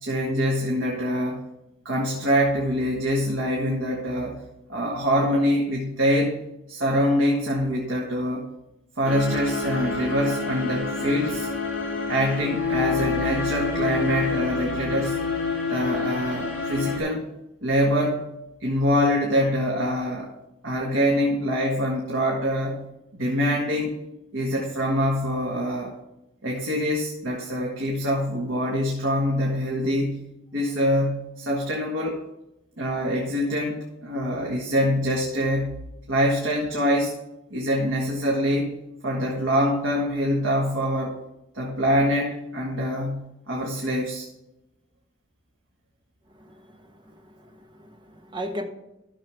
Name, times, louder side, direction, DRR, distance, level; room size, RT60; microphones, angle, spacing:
voice 1, 0.0-1.4 1.9-4.4 4.7-6.4 6.7-8.5 9.0-11.5 12.1-15.2 15.7-17.3 17.6-18.3 18.6-20.3 20.6-22.9 23.1-23.9 24.3-26.0 26.4-32.2 32.8-35.8 36.1-37.2 37.5-38.7 39.0-41.2 41.5-44.3, equal, 75° right, -1 dB, 1.7 m, -24 dB
sound 1, 9.0-17.0, left 4 dB, 70° left, 3.4 m, -28 dB
voice 2, 47.1-48.6, equal, 25° right, 4 dB, 1.3 m, -36 dB
13.0 x 6.8 x 3.5 m, 0.91 s
head